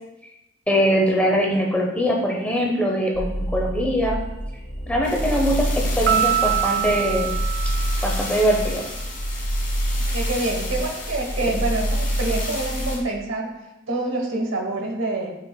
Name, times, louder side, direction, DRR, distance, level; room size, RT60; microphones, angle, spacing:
voice 1, 0.7-4.2 4.9-7.3 7.7-7.8 8.0-8.9, equal, 5° left, 0 dB, 0.7 m, -22 dB
sound 1, 3.1-13.0, equal, 40° left, 1.2 m, -26 dB
Piano, 6.1-8.6, right 12 dB, 55° right, 0.4 m, -25 dB
voice 2, 10.0-13.5 13.9-15.3, right 2 dB, 80° right, 1 dB, 1.2 m, -26 dB
8.5 x 5.7 x 2.2 m, 0.92 s
head